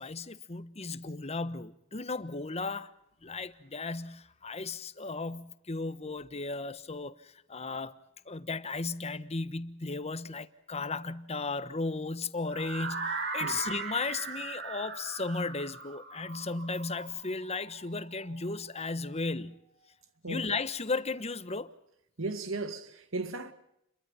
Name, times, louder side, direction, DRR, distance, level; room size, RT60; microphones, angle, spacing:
voice 1, 0.0-2.9 3.2-7.9 8.3-19.6 20.3-21.7, left 3 dB, 30° left, 1.2 m, -35 dB
sound 1, 12.5-18.4, right 4 dB, 60° right, 4.6 m, -39 dB
voice 2, 20.2-20.5 22.2-23.5, right 3 dB, 85° right, 2.3 m, -36 dB
29.5 x 23.0 x 5.7 m
head